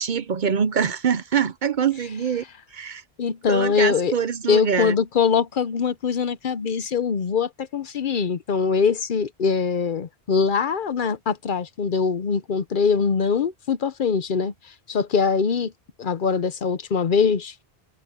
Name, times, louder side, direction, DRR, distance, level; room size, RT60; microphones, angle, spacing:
voice 1, 0.0-2.4 2.7-3.0 3.5-4.9, right 7 dB, 55° right, 0.7 m, -24 dB
voice 2, 3.2-4.2 4.5-14.5 14.9-15.7 16.0-17.5, left 6 dB, 55° left, 0.8 m, -22 dB
omnidirectional pair, 1.0 m